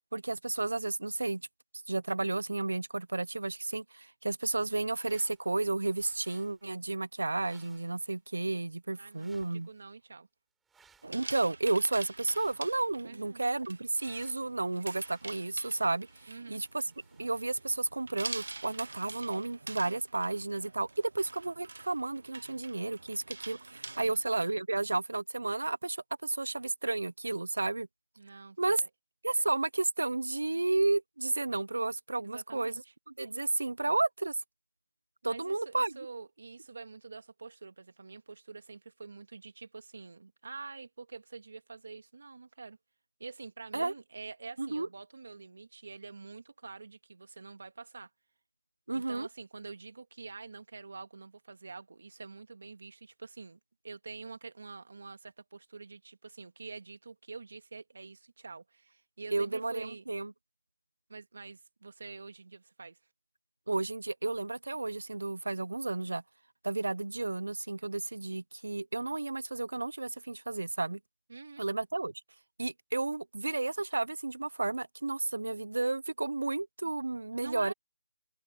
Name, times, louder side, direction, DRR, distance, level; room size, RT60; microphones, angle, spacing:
voice 1, 0.1-1.4 1.9-9.7 11.1-16.8 17.2-27.9 28.6-28.8 29.2-32.8 33.2-34.4 35.2-35.9 43.7-43.9 44.6-44.9 48.9-49.3 59.3-60.3 63.7-66.2 66.6-71.0 71.6-72.1 72.6-77.7, right 2 dB, 80° right, 0.7 m, -32 dB
sound 1, 4.5-5.6 5.8-6.6 7.3-8.1 9.1-9.8 10.6-11.3 12.1-12.8 13.9-19.9, right 6 dB, 5° right, 4.5 m, -67 dB
voice 2, 9.0-10.3 13.0-13.4 16.3-16.6 23.9-24.2 28.2-28.9 32.2-32.9 35.2-42.8 43.2-48.1 48.9-53.6 53.8-60.1 61.1-63.0 71.3-71.7 77.3-77.7, right 4 dB, 45° right, 2.1 m, -47 dB
sound 2, 11.0-24.5, right 3 dB, 65° right, 1.1 m, -46 dB
open air
figure-of-eight pair, 180°, 0 cm